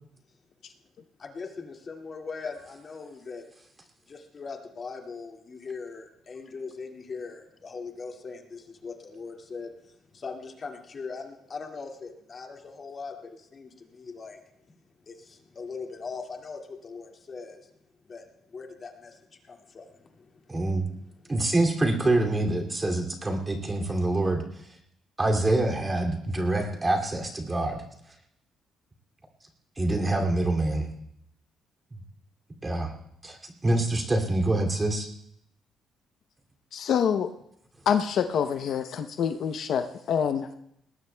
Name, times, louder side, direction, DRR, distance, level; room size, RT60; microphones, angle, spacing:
voice 1, 1.2-3.5 4.1-14.4 15.1-17.7 18.0-20.6 20.9-21.2, left 4 dB, 40° left, 1 dB, 2.1 m, -40 dB
voice 2, 20.5-20.9 21.3-24.4 25.2-27.8 29.8-30.9 32.6-32.9 33.2-33.4 33.6-35.1, right 2 dB, 20° right, 2 dB, 2.5 m, -25 dB
voice 3, 36.7-37.3 37.9-40.5, left 8 dB, 65° left, 7 dB, 0.7 m, -26 dB
21.0 x 19.0 x 2.3 m, 0.75 s
cardioid pair, 110°, 0 cm